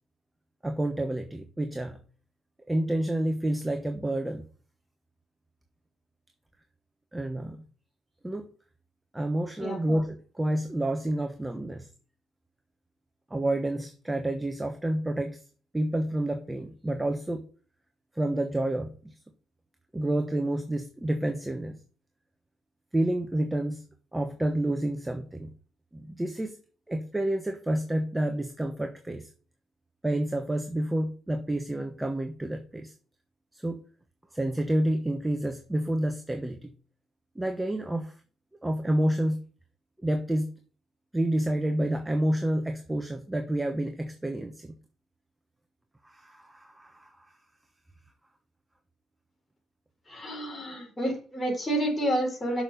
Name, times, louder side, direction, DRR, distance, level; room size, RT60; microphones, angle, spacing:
voice 1, 0.6-2.0 2.7-4.4 7.1-7.6 8.2-8.5 9.1-11.9 13.3-15.4 15.7-17.5 18.2-19.1 19.9-21.8 22.9-23.8 24.1-25.5 25.9-26.6 26.9-29.3 30.0-32.9 33.5-33.8 34.3-36.7 37.3-38.1 38.6-39.4 40.0-40.5 41.1-44.7 46.0-47.3 50.5-50.6, right 1 dB, 10° right, 6 dB, 1.1 m, -29 dB
voice 2, 50.1-52.6, right 1 dB, 20° left, 0 dB, 4.1 m, -29 dB
6.6 x 6.2 x 5.5 m, 0.40 s
cardioid pair, 90°, 0 cm